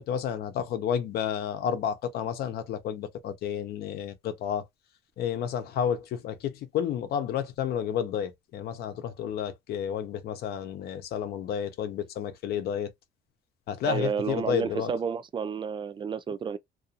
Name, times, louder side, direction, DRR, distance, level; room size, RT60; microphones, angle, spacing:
voice 1, 0.0-4.6 5.2-12.9 13.7-14.9, left 8 dB, 70° left, 0.7 m, -31 dB
voice 2, 13.9-16.6, right 6 dB, 30° right, 0.4 m, -31 dB
2.4 x 2.4 x 2.6 m
cardioid pair, 110°, 17 cm